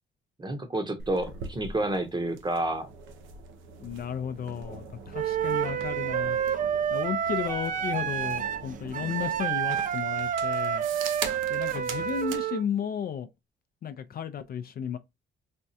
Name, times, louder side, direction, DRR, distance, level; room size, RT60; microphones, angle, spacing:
voice 1, 0.4-2.9, right 1 dB, 20° right, 0.8 m, -29 dB
sound 1, 1.0-12.5, right 5 dB, 80° right, 0.7 m, -42 dB
voice 2, 3.8-6.4 6.9-10.8 11.5-13.3 13.8-15.0, left 8 dB, 50° left, 0.4 m, -34 dB
Wind instrument woodwind instrument, 5.1-12.6, right 8 dB, 40° right, 0.4 m, -29 dB
4.2 x 2.3 x 2.6 m
cardioid pair, 90°, 20 cm